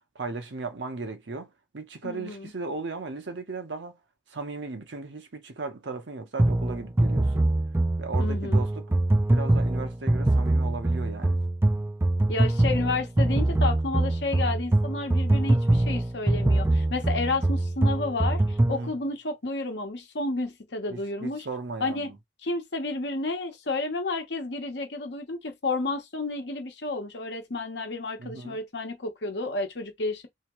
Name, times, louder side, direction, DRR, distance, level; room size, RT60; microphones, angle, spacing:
voice 1, 0.1-4.0 4.3-7.5 8.0-8.8 9.3-11.4 18.7-19.0 20.9-22.2 28.2-28.6, right 3 dB, 75° right, 0.9 m, -36 dB
voice 2, 2.0-2.5 8.2-8.6 12.3-21.5 21.8-22.1 22.4-30.3, left 3 dB, 65° left, 1.0 m, -31 dB
sound 1, 6.4-18.8, right 1 dB, 15° right, 0.3 m, -23 dB
3.5 x 2.8 x 3.0 m
head